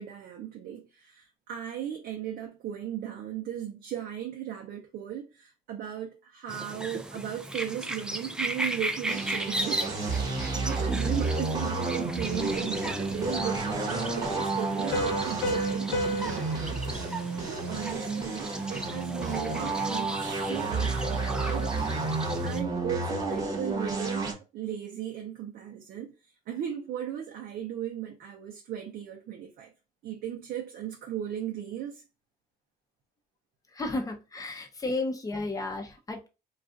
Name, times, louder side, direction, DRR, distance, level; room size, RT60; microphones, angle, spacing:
voice 1, 0.0-10.1 10.5-16.5 17.5-21.8 22.4-26.1 26.5-29.7 30.0-32.0, right 10 dB, 65° right, 0.6 m, -37 dB
sound 1, 6.5-22.6, right 1 dB, 5° right, 0.4 m, -37 dB
sound 2, 9.1-24.3, right 3 dB, 20° right, 1.1 m, -31 dB
Piano, 14.9-18.3, right 1 dB, 70° left, 0.6 m, -33 dB
voice 2, 33.7-36.3, left 2 dB, 20° left, 0.8 m, -33 dB
2.4 x 2.4 x 3.7 m
cardioid pair, 110°, 17 cm